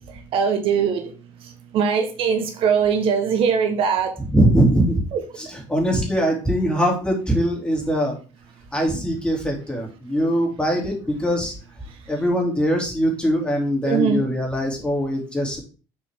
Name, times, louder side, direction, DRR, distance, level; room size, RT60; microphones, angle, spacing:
voice 1, 0.1-1.1 1.7-4.1 5.1-5.2 13.8-14.3, right 6 dB, 65° right, 6 dB, 1.2 m, -21 dB
voice 2, 4.3-5.0 5.7-8.2 8.7-11.5 12.1-15.6, equal, 10° left, -1 dB, 3.0 m, -21 dB
6.7 x 4.6 x 3.7 m, 0.36 s
supercardioid pair, 85°, 10 cm